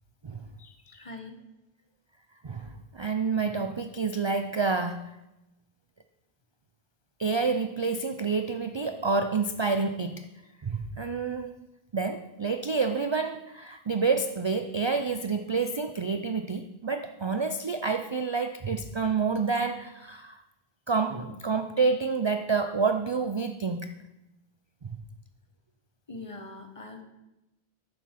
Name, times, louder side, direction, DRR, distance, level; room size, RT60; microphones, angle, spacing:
voice 1, 0.2-1.0 2.4-5.2 7.2-10.3 10.6-11.5 11.9-20.4 20.9-24.0 24.8-25.0, right 4 dB, 40° right, 8 dB, 0.4 m, -28 dB
voice 2, 0.9-1.4 26.1-27.0, left 3 dB, 35° left, 5 dB, 1.2 m, -42 dB
9.7 x 7.5 x 5.8 m, 0.95 s
omnidirectional pair, 1.0 m